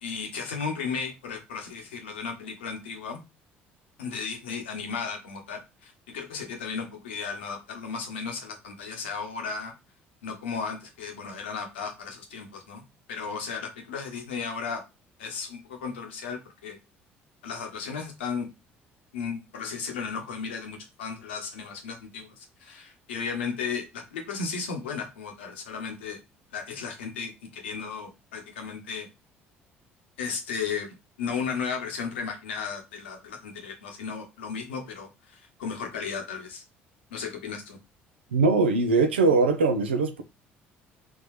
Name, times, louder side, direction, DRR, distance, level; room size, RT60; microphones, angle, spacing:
voice 1, 0.0-3.2 4.0-9.7 10.2-12.8 13.1-14.8 15.2-16.8 17.4-18.5 19.1-26.2 26.5-29.1 30.2-36.6 37.1-37.8, left 5 dB, 80° left, 1.0 m, -35 dB
voice 2, 38.3-40.2, right 3 dB, 85° right, 0.5 m, -21 dB
3.8 x 3.4 x 3.1 m
figure-of-eight pair, 55°, 6 cm